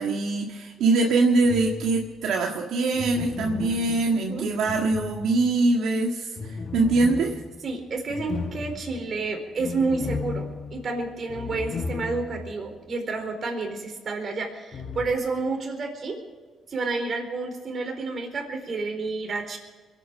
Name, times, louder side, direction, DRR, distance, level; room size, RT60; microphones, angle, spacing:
voice 1, 0.0-6.3 6.7-7.4, right 3 dB, 80° right, 0 dB, 1.7 m, -23 dB
sound 1, 1.4-2.2 2.9-5.7 6.4-12.6 12.9-13.0 14.7-15.1, left 4 dB, 45° left, 1.3 m, -35 dB
voice 2, 7.6-16.2 16.7-19.6, right 3 dB, 50° right, 4 dB, 4.3 m, -30 dB
23.0 x 9.2 x 6.5 m, 1.4 s
cardioid pair, 90°, 0 cm